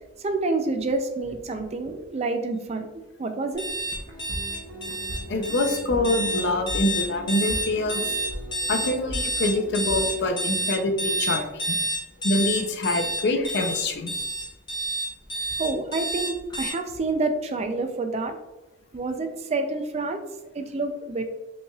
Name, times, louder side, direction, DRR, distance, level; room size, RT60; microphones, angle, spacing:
voice 1, 0.2-2.9 3.2-3.6 15.6-18.4 18.9-20.2 20.5-21.2, right 3 dB, 30° right, 6 dB, 0.4 m, -28 dB
sound 1, 3.6-16.7, equal, 20° left, 0.8 m, -29 dB
sound 2, 4.1-10.2, equal, 70° right, 0.8 m, -37 dB
voice 2, 5.2-8.2 8.7-11.8 12.2-14.1, left 2 dB, 55° left, 6 dB, 0.5 m, -25 dB
5.2 x 3.2 x 2.3 m, 1.0 s
head